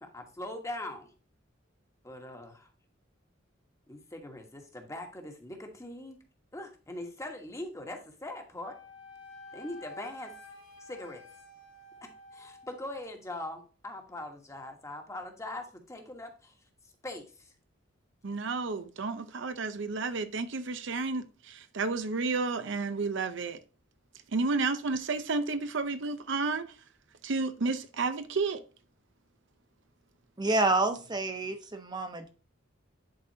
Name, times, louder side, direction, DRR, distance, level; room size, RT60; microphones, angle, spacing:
voice 1, 0.0-1.1 2.0-2.7 3.9-6.2 6.5-8.8 9.5-10.3 10.8-11.2 12.3-16.6 17.0-17.5, left 1 dB, 15° left, 1.3 m, -41 dB
Wind instrument woodwind instrument, 8.6-12.9, left 2 dB, 85° left, 1.7 m, -50 dB
voice 2, 18.2-23.6 24.3-26.7 27.2-28.6, right 3 dB, 65° right, 0.6 m, -31 dB
voice 3, 30.4-32.3, right 2 dB, 20° right, 0.9 m, -28 dB
10.5 x 4.1 x 2.8 m
head